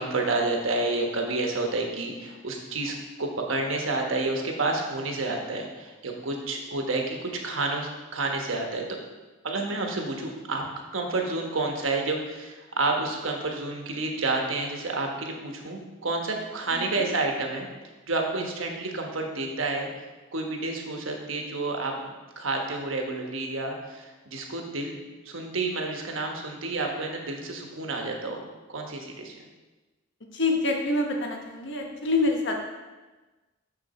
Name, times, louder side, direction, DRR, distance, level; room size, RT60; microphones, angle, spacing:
voice 1, 0.0-9.0 9.4-17.7 18.1-19.9 20.3-25.0 25.2-28.4 28.7-29.5, right 2 dB, 75° right, 2 dB, 1.2 m, -30 dB
voice 2, 16.7-17.1 30.3-32.6, left 2 dB, 60° left, 2 dB, 1.2 m, -26 dB
6.6 x 6.6 x 4.3 m, 1.2 s
head